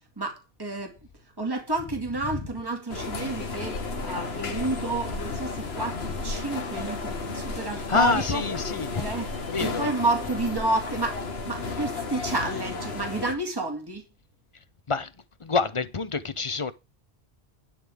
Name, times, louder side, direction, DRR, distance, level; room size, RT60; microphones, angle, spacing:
voice 1, 0.2-0.9 1.4-8.4 9.0-9.3 9.6-11.2 11.5-14.0, right 2 dB, 20° right, 2.1 m, -30 dB
sound 1, 2.9-13.3, left 3 dB, 75° left, 1.6 m, -33 dB
voice 2, 7.9-9.0 9.5-9.9 14.9-15.1 15.4-16.7, left 4 dB, 35° left, 0.7 m, -26 dB
11.5 x 9.3 x 3.6 m
omnidirectional pair, 1.1 m